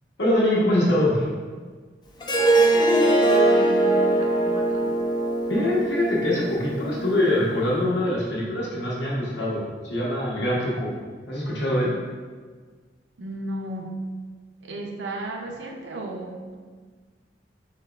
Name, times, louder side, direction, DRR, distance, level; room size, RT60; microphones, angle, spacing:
voice 1, 0.2-1.3 5.5-10.9 11.3-11.9, left 1 dB, 75° left, -6 dB, 1.3 m, -23 dB
Harp, 2.2-7.4, right 2 dB, 25° left, 0.5 m, -21 dB
voice 2, 2.5-5.0 13.2-14.1 14.6-16.6, right 2 dB, 80° right, 2 dB, 0.6 m, -34 dB
4.5 x 3.0 x 3.5 m, 1.5 s
head